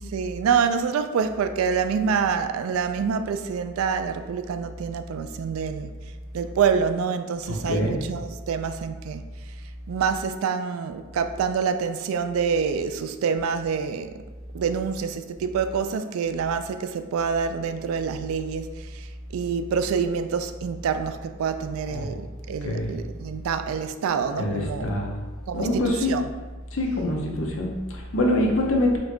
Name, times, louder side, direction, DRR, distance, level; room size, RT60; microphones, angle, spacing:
voice 1, 0.1-5.9 6.3-9.2 9.9-14.2 14.5-19.1 19.3-24.9 25.5-26.2, right 6 dB, 85° right, 0.3 m, -26 dB
voice 2, 7.5-8.0 21.8-22.1 22.6-22.9 24.4-25.1 25.5-26.2 26.7-29.0, left 1 dB, 70° left, 0.8 m, -25 dB
4.3 x 2.2 x 4.4 m
head